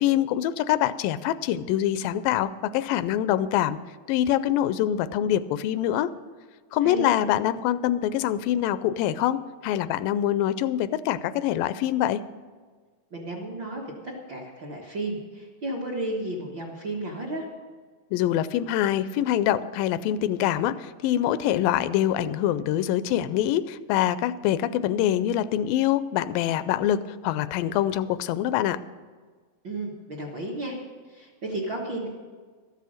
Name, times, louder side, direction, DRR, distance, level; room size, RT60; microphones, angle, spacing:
voice 1, 0.0-3.8 4.1-6.1 6.7-12.3 18.1-28.8, left 11 dB, 85° left, 14 dB, 2.3 m, -25 dB
voice 2, 6.8-7.1 13.1-17.5 27.6-27.7 29.6-30.8 31.1-32.1, right 2 dB, 50° right, -2 dB, 1.4 m, -33 dB
13.5 x 8.2 x 6.4 m, 1.5 s
omnidirectional pair, 3.9 m